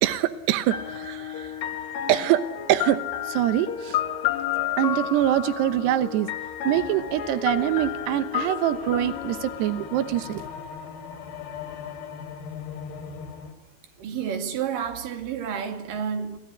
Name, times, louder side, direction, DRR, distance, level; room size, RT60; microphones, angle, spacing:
voice 1, 0.0-1.6 2.1-2.4 2.7-3.0 3.3-4.0 4.8-6.3 6.6-10.5, right 13 dB, 90° right, 3.1 m, -24 dB
sound 1, 0.7-10.5, left 10 dB, 55° left, 2.4 m, -31 dB
sound 2, 6.8-13.5, left 6 dB, 80° left, 4.3 m, -40 dB
voice 2, 14.0-16.4, right 7 dB, 60° right, 3.9 m, -30 dB
27.0 x 17.0 x 9.9 m
omnidirectional pair, 4.7 m